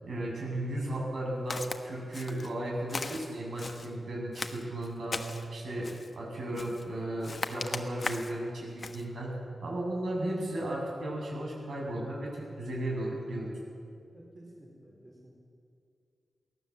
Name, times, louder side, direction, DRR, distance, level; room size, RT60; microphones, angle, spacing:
voice 1, 0.0-5.9 6.1-9.3 9.6-13.5, right 1 dB, 70° right, -2 dB, 7.6 m, -35 dB
Walk footsteps, 1.5-1.8 2.1-2.5 2.9-3.9 4.3-5.5 5.8-6.1 6.5-6.9 7.2-8.4 8.8-9.0, left 3 dB, 35° left, 1.2 m, -38 dB
voice 2, 14.1-15.4, right 1 dB, 25° right, -3 dB, 4.3 m, -53 dB
23.5 x 17.5 x 7.4 m, 2.4 s
wide cardioid pair, 140°, 0 cm